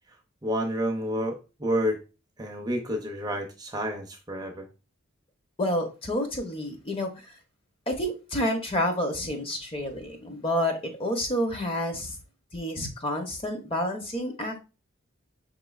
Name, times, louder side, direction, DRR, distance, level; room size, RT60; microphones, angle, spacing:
voice 1, 0.4-2.0 2.4-4.7, equal, 20° right, 3 dB, 0.5 m, -29 dB
voice 2, 5.6-7.3 7.9-12.2 12.5-14.6, left 1 dB, 25° left, 5 dB, 0.6 m, -29 dB
5.5 x 3.1 x 2.3 m, 0.32 s
head